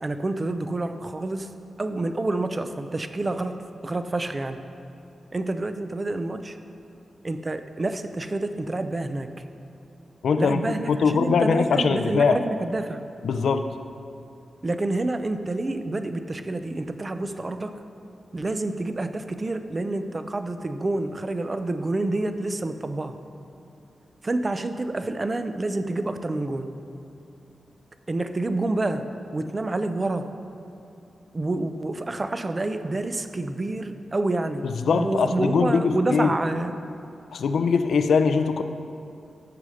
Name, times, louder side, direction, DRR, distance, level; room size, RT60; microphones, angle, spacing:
voice 1, 0.0-1.5 1.8-3.6 3.8-4.6 5.3-6.6 7.2-9.4 10.4-13.0 14.6-17.8 18.3-23.2 24.2-26.7 28.1-29.1 29.3-30.3 31.3-34.7 34.9-36.7, right 2 dB, 25° right, 9 dB, 0.4 m, -28 dB
voice 2, 10.2-12.4 13.2-13.7 34.6-36.4 37.3-38.6, left 5 dB, 90° left, 8 dB, 0.5 m, -22 dB
14.0 x 4.9 x 6.3 m, 2.6 s
wide cardioid pair, 170°, 0 cm